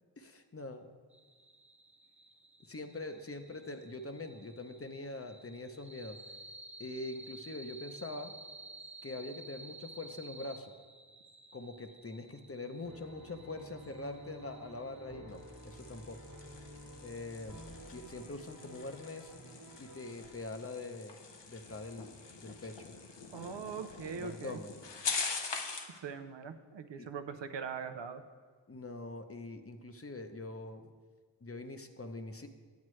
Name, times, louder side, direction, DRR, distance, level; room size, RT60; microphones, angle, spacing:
voice 1, 0.2-0.9 2.7-6.2 6.8-8.3 9.0-10.7 11.5-16.2 17.0-17.6 17.9-19.3 19.8-21.2 21.5-22.9 24.1-24.8 27.0-27.1 28.7-30.9 31.4-32.5, left 2 dB, 30° left, 7 dB, 0.7 m, -43 dB
sound 1, 1.1-15.6, right 2 dB, 15° right, 0.7 m, -54 dB
sound 2, 12.8-20.4, right 1 dB, 50° right, 1.4 m, -52 dB
sound 3, 15.3-26.0, left 4 dB, 70° left, 0.8 m, -43 dB
voice 2, 23.3-24.6 25.9-28.2, right 6 dB, 80° right, 8 dB, 0.6 m, -41 dB
9.3 x 8.7 x 3.2 m, 1.5 s
wide cardioid pair, 50°, 43 cm